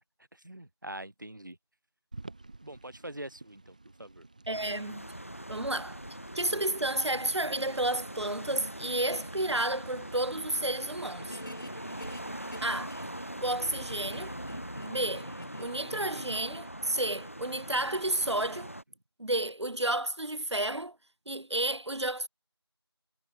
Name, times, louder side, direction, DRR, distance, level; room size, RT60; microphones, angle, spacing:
voice 1, 0.3-1.6 2.6-4.3, right 1 dB, 45° right, 0.8 m, -44 dB
sound 1, 2.1-12.2, right 2 dB, 15° right, 3.6 m, -53 dB
sound 2, 4.5-18.8, right 1 dB, 30° left, 0.6 m, -42 dB
voice 2, 4.5-5.1 5.5-6.0 6.3-11.4 12.6-13.0 13.4-14.3 14.8-15.3 15.6-18.7 19.2-21.0 21.3-22.3, right 1 dB, 80° right, 1.0 m, -31 dB
sound 3, 10.6-13.3 13.6-16.4, left 1 dB, 50° left, 4.6 m, -47 dB
figure-of-eight pair, 175°, 14 cm